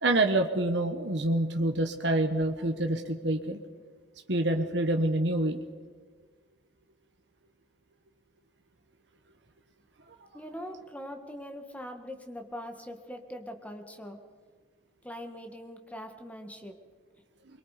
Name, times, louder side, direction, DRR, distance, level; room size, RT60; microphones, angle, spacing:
voice 1, 0.0-3.6 4.3-5.6, right 1 dB, 70° right, 4 dB, 1.3 m, -27 dB
voice 2, 10.3-14.2 15.0-16.8, equal, 10° left, 4 dB, 1.9 m, -42 dB
24.5 x 23.0 x 5.1 m, 1.5 s
head